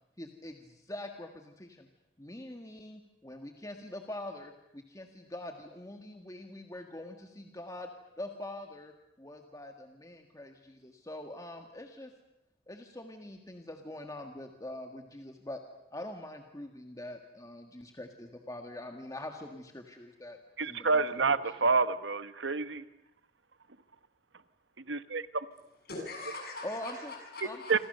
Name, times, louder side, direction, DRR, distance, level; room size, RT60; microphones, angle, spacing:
voice 1, 0.2-1.9 2.2-7.9 8.2-8.9 9.2-12.1 12.7-15.6 15.9-20.4 20.6-21.0 21.5-21.6 26.6-27.1 27.4-27.6, left 1 dB, 20° left, 1.7 m, -44 dB
voice 2, 20.6-22.8 24.9-25.4 27.7-27.8, right 4 dB, 75° right, 1.2 m, -28 dB
voice 3, 25.9-27.9, left 2 dB, 55° left, 7.3 m, -42 dB
27.5 x 27.0 x 6.7 m
head